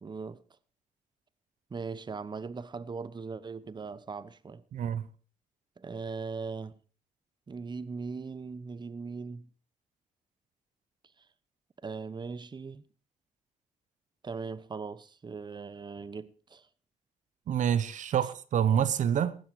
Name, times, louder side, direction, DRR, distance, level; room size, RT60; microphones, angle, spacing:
voice 1, 0.0-0.4 1.7-4.6 5.8-6.8 7.5-9.5 11.8-12.8 14.2-16.7, right 4 dB, 35° right, 0.9 m, -39 dB
voice 2, 4.7-5.1 17.5-19.4, right 9 dB, 70° right, 0.8 m, -27 dB
15.5 x 11.5 x 4.7 m
cardioid pair, 65°, 13 cm